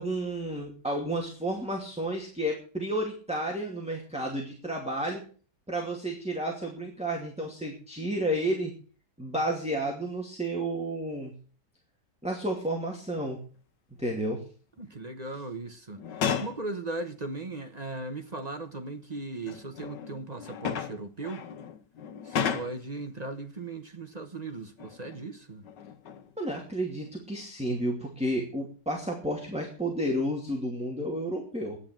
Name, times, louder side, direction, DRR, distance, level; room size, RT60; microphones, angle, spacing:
voice 1, 0.0-5.2 5.7-8.7 9.2-11.3 12.2-13.4 14.0-14.4 26.4-31.8, right 1 dB, 5° right, 2.4 m, -31 dB
voice 2, 14.8-16.0 16.4-21.5 22.2-25.6, right 2 dB, 25° right, 1.1 m, -38 dB
sound 1, 16.0-16.7 17.8-17.9 19.2-23.0 24.8-25.3 25.6-26.4 26.9-27.1, left 7 dB, 85° left, 1.7 m, -34 dB
11.5 x 9.7 x 7.5 m
omnidirectional pair, 1.8 m